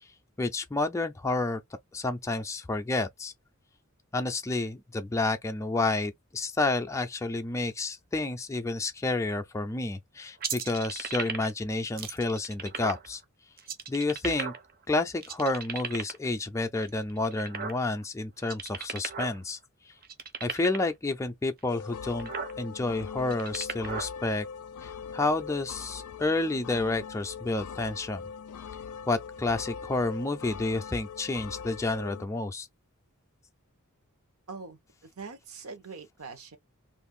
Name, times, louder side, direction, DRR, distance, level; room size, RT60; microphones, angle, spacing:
voice 1, 0.4-1.6 1.9-3.3 4.1-13.2 13.9-14.5 14.9-19.6 20.4-22.3 22.6-24.5 24.8-28.2 29.1-32.7, left 2 dB, 15° left, 0.4 m, -30 dB
sound 1, 10.4-11.6 12.0-13.1 13.6-14.8 15.2-16.3 16.8-18.0 18.4-19.4 19.6-19.7 20.0-20.9 21.6-21.7 22.0-22.5 23.2-24.1, right 6 dB, 40° right, 0.6 m, -35 dB
sound 2, 21.7-32.2, left 6 dB, 85° left, 0.4 m, -41 dB
voice 2, 34.5-36.6, right 4 dB, 75° right, 0.9 m, -43 dB
2.5 x 2.4 x 3.6 m
head